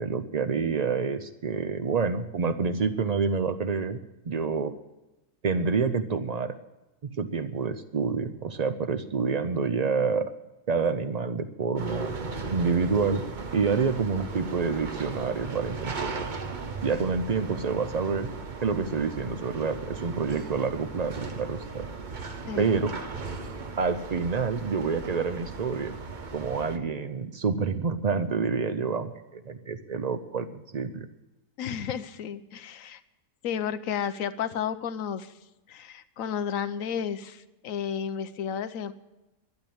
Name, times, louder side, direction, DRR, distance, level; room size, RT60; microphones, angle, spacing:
voice 1, 0.0-4.0 4.3-4.7 5.4-6.6 7.0-10.2 10.7-12.1 12.5-13.2 13.5-16.3 16.8-18.3 18.6-21.9 22.6-23.0 23.8-25.9 26.3-30.5 30.7-31.1, right 5 dB, 85° right, 9 dB, 0.3 m, -28 dB
sound 1, 11.8-26.8, right 4 dB, 35° right, 0.9 m, -37 dB
voice 2, 31.6-33.0 33.4-35.3 35.7-38.9, left 8 dB, 65° left, 11 dB, 1.1 m, -32 dB
12.5 x 10.5 x 8.6 m, 1.0 s
omnidirectional pair, 1.6 m